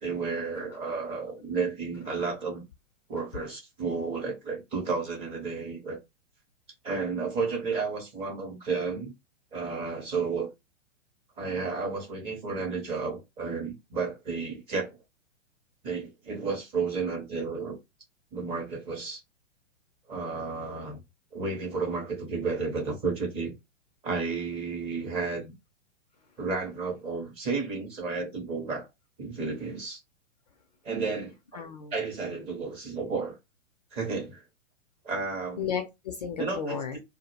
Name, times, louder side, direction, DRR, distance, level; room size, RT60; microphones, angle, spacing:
voice 1, 0.0-2.6 3.1-6.0 6.8-9.1 9.5-10.5 11.4-15.0 15.8-17.8 18.3-19.2 20.1-21.0 21.3-23.5 24.0-25.5 26.4-28.9 29.2-30.0 30.8-31.3 31.9-33.4 33.9-34.4 35.0-35.7 36.4-37.0, right 4 dB, 15° right, 0.5 m, -32 dB
voice 2, 31.5-31.9 32.2-32.5 35.6-37.0, left 7 dB, 35° left, 0.4 m, -34 dB
2.1 x 2.0 x 2.9 m
figure-of-eight pair, 110°, 38 cm